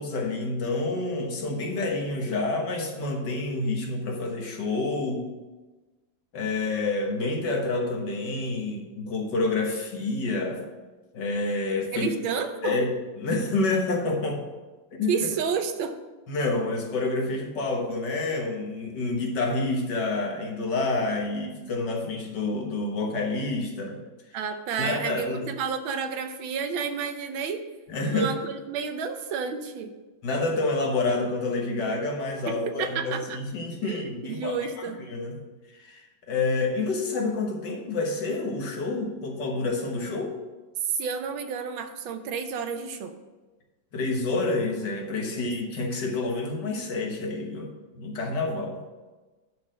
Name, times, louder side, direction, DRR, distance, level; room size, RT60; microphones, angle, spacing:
voice 1, 0.0-5.3 6.3-10.6 11.1-12.1 12.6-12.9 13.2-14.4 14.9-15.2 16.3-24.0 24.8-25.5 27.9-28.3 30.2-34.6 35.1-35.3 35.7-40.4 43.9-48.8, left 3 dB, 60° left, 1 dB, 1.9 m, -28 dB
voice 2, 11.9-12.9 15.1-16.0 24.3-27.7 28.1-29.9 32.4-33.4 33.8-35.0 40.8-43.2 45.3-45.5, right 6 dB, 85° right, 8 dB, 1.6 m, -31 dB
10.5 x 4.0 x 6.3 m, 1.2 s
omnidirectional pair, 2.1 m